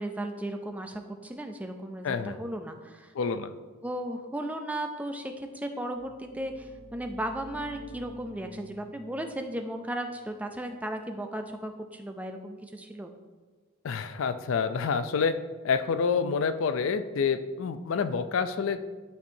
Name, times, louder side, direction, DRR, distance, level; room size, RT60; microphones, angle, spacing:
voice 1, 0.0-3.1 3.8-13.1, right 1 dB, 5° right, 5 dB, 0.4 m, -35 dB
voice 2, 2.0-2.4 3.1-3.5 13.8-15.4 15.6-19.0, left 5 dB, 75° left, 11 dB, 0.4 m, -28 dB
sound 1, 5.9-11.5, left 1 dB, 25° left, 1.9 m, -50 dB
11.5 x 4.4 x 2.7 m, 1.4 s
head